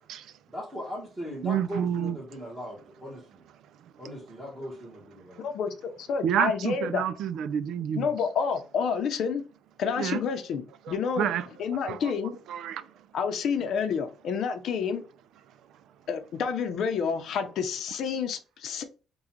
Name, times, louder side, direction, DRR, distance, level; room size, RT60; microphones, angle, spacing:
voice 1, 0.0-0.3 1.4-2.2 5.3-5.4 6.2-8.1 10.0-10.2 10.9-12.1 12.5-12.9, right 9 dB, 75° right, 0.4 m, -29 dB
voice 2, 0.5-3.4 4.0-5.4, equal, 10° right, 1.2 m, -39 dB
voice 3, 5.4-7.0 8.0-9.4 9.8-11.3 11.6-12.4 13.1-15.0 16.1-18.8, left 6 dB, 65° left, 0.7 m, -29 dB
3.8 x 2.3 x 4.3 m
cardioid pair, 120°, 0 cm